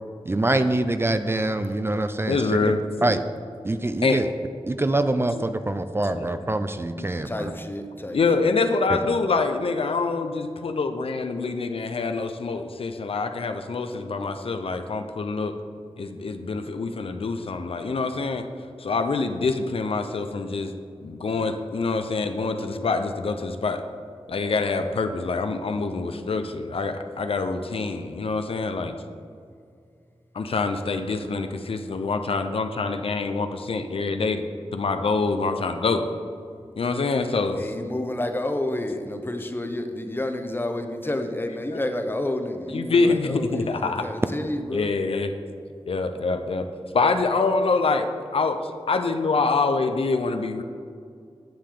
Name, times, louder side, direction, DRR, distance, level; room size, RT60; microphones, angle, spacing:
voice 1, 0.3-2.7 3.0-3.2 3.6-4.3 4.7-7.5 8.9-9.0, right 2 dB, 25° right, 9 dB, 0.4 m, -25 dB
voice 2, 2.3-3.2 4.0-4.2 6.1-6.4 7.0-7.1 8.1-15.5 16.0-18.4 18.8-20.7 21.0-23.8 24.3-28.9 30.3-34.4 34.7-36.0 36.8-37.6 42.7-44.0 44.7-45.3 45.9-46.7 46.9-50.6, left 4 dB, 70° left, 7 dB, 0.6 m, -25 dB
voice 3, 7.2-8.5 37.5-44.9, left 1 dB, 20° left, 6 dB, 0.8 m, -30 dB
10.5 x 6.7 x 3.8 m, 2.3 s
wide cardioid pair, 65°, 10 cm